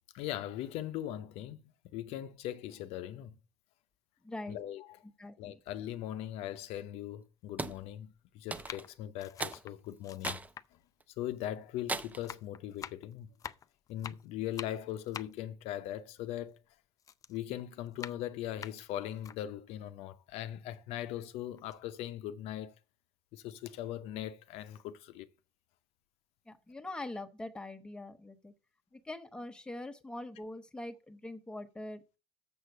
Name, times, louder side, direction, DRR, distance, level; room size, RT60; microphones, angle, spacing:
voice 1, 0.1-3.4 4.5-5.0 5.4-10.4 10.7-10.8 11.2-13.3 13.9-16.6 17.3-22.7 23.3-25.3, left 12 dB, 70° left, 0.7 m, -40 dB
voice 2, 4.2-4.6 5.2-5.6 26.5-28.5 28.9-32.2, left 2 dB, 10° left, 1.0 m, -43 dB
sound 1, 5.7-5.8 6.6-6.7 7.7-8.0 8.5-11.8 12.1-16.7 17.0-19.4 19.9-20.0 20.3-21.2 21.6-21.8, left 8 dB, 30° left, 0.4 m, -47 dB
sound 2, 7.6-7.8 8.5-8.9 9.4-9.6 10.2-10.5 11.0-11.1 11.9-12.3, right 3 dB, 15° right, 0.6 m, -37 dB
7.0 x 6.6 x 6.6 m
cardioid pair, 130°, 11 cm